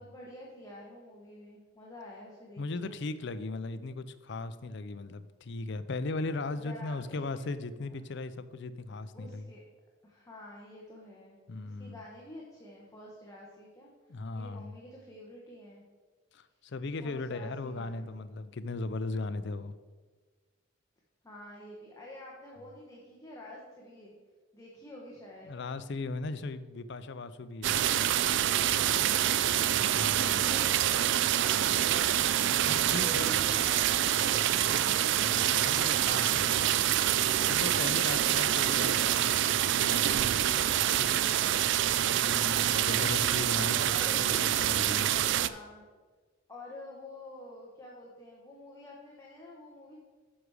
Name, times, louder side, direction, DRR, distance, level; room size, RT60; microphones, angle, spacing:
voice 1, 0.0-2.9 6.6-8.2 9.1-9.6 10.0-11.4 11.6-15.8 17.0-18.2 21.2-24.1 24.5-25.6 28.6-29.6 30.2-31.9 32.9-35.0 38.1-39.1 40.7-41.6 43.9-44.5 45.3-45.8 46.5-50.0, left 1 dB, 15° left, -4 dB, 1.2 m, -49 dB
voice 2, 2.6-9.5 11.5-12.0 14.1-14.7 16.3-19.7 25.5-28.1 29.9-30.6 32.5-33.4 35.1-36.8 37.5-40.5 41.1-41.2 42.2-45.1, left 3 dB, 60° left, 13 dB, 0.5 m, -38 dB
sound 1, 27.6-45.5, right 11 dB, 60° right, 0.4 m, -26 dB
10.0 x 6.3 x 4.8 m, 1.4 s
head